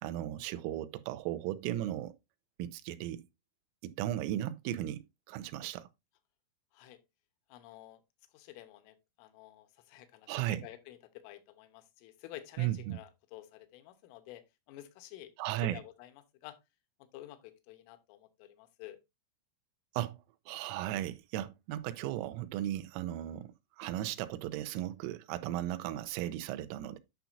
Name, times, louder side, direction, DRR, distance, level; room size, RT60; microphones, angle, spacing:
voice 1, 0.0-2.1 2.6-3.3 3.8-5.0 5.3-5.9 10.3-10.6 12.6-13.0 15.4-15.8 19.9-20.2 20.5-27.0, right 13 dB, 85° right, 3.3 m, -36 dB
voice 2, 7.5-8.0 8.3-14.4 14.7-15.3 15.6-16.1 16.4-16.6 17.0-19.0, left 14 dB, 80° left, 3.4 m, -50 dB
10.0 x 5.7 x 2.6 m
omnidirectional pair, 5.7 m